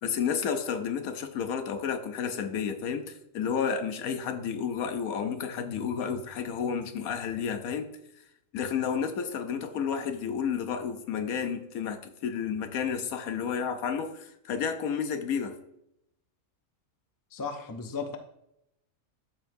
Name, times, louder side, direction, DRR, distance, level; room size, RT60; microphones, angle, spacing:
voice 1, 0.0-7.9 8.5-15.5, left 7 dB, 85° left, 1.2 m, -31 dB
voice 2, 17.3-18.2, left 5 dB, 30° left, 0.4 m, -35 dB
12.5 x 4.6 x 2.6 m
omnidirectional pair, 1.5 m